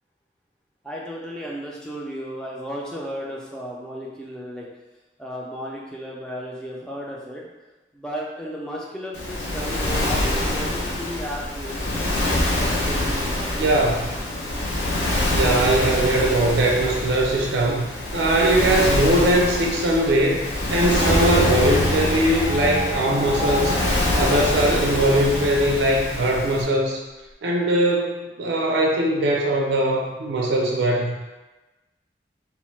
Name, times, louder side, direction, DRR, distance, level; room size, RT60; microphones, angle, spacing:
voice 1, 0.8-4.7 5.2-7.5 7.9-12.1 12.7-14.2, equal, 5° left, -4 dB, 0.3 m, -34 dB
Waves surf, 9.1-26.6, left 1 dB, 80° left, 0.6 m, -25 dB
voice 2, 13.6-14.1 15.3-17.8 18.1-20.4 20.7-23.8 24.1-27.0 27.4-31.1, right 1 dB, 85° right, -1 dB, 0.4 m, -20 dB
Bowed string instrument, 21.0-25.7, left 1 dB, 40° left, 0.9 m, -28 dB
2.8 x 2.0 x 3.1 m, 1.1 s
head